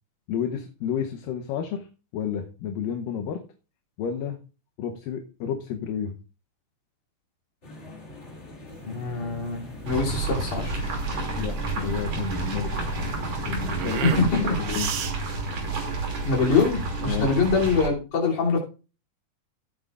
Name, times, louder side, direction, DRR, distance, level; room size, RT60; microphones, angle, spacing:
voice 1, 0.3-1.9 2.1-3.4 4.0-4.4 4.8-6.2 11.4-13.1 13.4-14.9 15.4-15.5 17.0-17.3, left 8 dB, 80° left, 4 dB, 2.6 m, -31 dB
sound 1, 7.6-14.0, left 2 dB, 25° left, 1.6 m, -40 dB
sound 2, 8.7-16.7, right 8 dB, 75° right, 1.4 m, -37 dB
voice 2, 8.8-10.9 14.0-14.5 16.2-18.6, left 4 dB, 60° left, -3 dB, 4.4 m, -24 dB
sound 3, 9.9-17.9, right 3 dB, 55° right, 3.7 m, -30 dB
17.0 x 8.8 x 2.5 m, 0.34 s
omnidirectional pair, 3.9 m